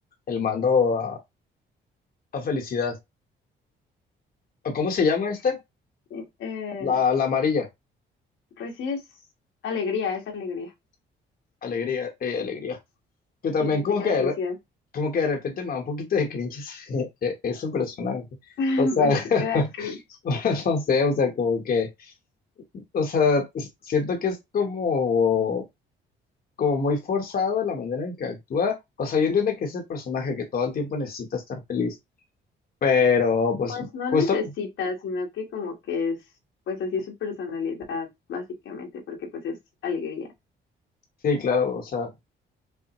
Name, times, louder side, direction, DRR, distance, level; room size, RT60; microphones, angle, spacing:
voice 1, 0.3-1.2 2.3-3.0 4.6-5.6 6.8-7.7 11.6-12.8 13.4-14.3 14.9-18.2 18.8-19.9 20.2-22.1 22.9-25.6 26.6-32.0 32.8-34.4 41.2-42.1, left 5 dB, 50° left, 1.0 m, -25 dB
voice 2, 6.1-7.0 8.6-9.0 9.6-10.7 13.6-14.5 18.6-20.2 33.7-36.2 36.7-39.6 39.8-40.3, left 4 dB, 75° left, 1.3 m, -30 dB
5.5 x 2.1 x 2.9 m
cardioid pair, 90°, 20 cm